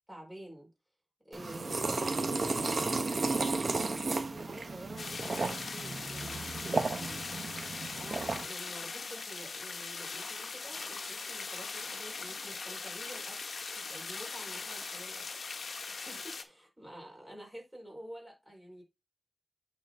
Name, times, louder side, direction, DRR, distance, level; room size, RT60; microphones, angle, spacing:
voice 1, 0.1-0.7 1.2-7.4 7.9-13.4 13.7-15.3 15.9-18.8, right 1 dB, 10° right, 4.7 m, -49 dB
sound 1, 1.3-8.5, right 3 dB, 50° right, 1.1 m, -33 dB
sound 2, 5.0-16.4, left 4 dB, 70° left, 0.9 m, -40 dB
8.8 x 4.5 x 3.7 m
wide cardioid pair, 125°, 0 cm